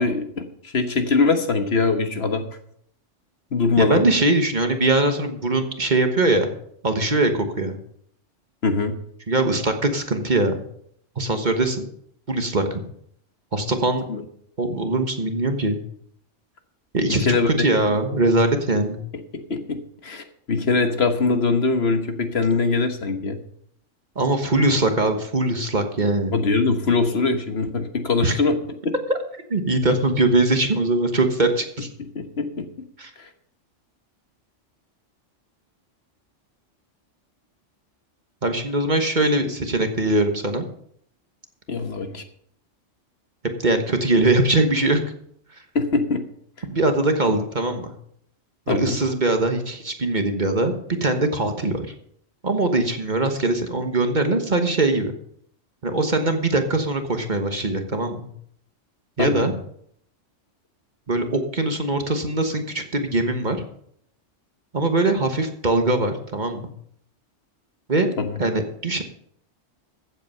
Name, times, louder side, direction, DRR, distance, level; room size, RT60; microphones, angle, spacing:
voice 1, 0.0-2.4 3.5-4.1 8.6-9.0 14.1-14.2 17.3-17.6 19.3-23.4 26.3-28.6 32.1-32.7 33.2-33.3 41.7-42.2 45.7-46.2 48.7-49.0 59.2-59.5 68.2-68.4, left 4 dB, 55° left, 7 dB, 1.5 m, -22 dB
voice 2, 3.8-6.5 6.8-7.8 9.3-10.5 11.2-11.9 12.3-12.8 13.5-14.0 14.6-15.8 16.9-19.0 24.1-26.3 28.2-28.4 29.5-31.9 33.0-33.1 38.4-40.6 43.6-45.0 46.7-47.9 48.7-50.7 51.0-51.9 52.4-55.1 55.8-58.2 59.2-59.5 61.1-63.6 64.7-66.6 67.9-68.1 68.4-69.0, right 2 dB, 40° right, 6 dB, 1.3 m, -21 dB
15.0 x 8.0 x 5.6 m, 0.67 s
omnidirectional pair, 1.3 m